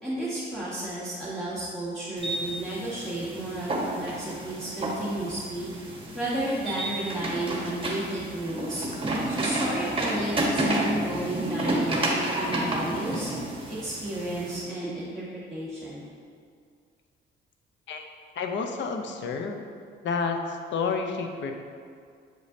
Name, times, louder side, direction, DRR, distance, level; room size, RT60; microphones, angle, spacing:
voice 1, 0.0-5.7 6.1-8.9 9.3-13.3 13.7-16.0, right 1 dB, 5° left, -10 dB, 1.3 m, -32 dB
sound 1, 2.2-14.6, right 1 dB, 25° right, 1.1 m, -30 dB
voice 2, 18.4-19.6 20.0-21.5, left 5 dB, 70° left, 4 dB, 0.7 m, -30 dB
7.5 x 5.1 x 2.7 m, 2.2 s
cardioid pair, 90°, 20 cm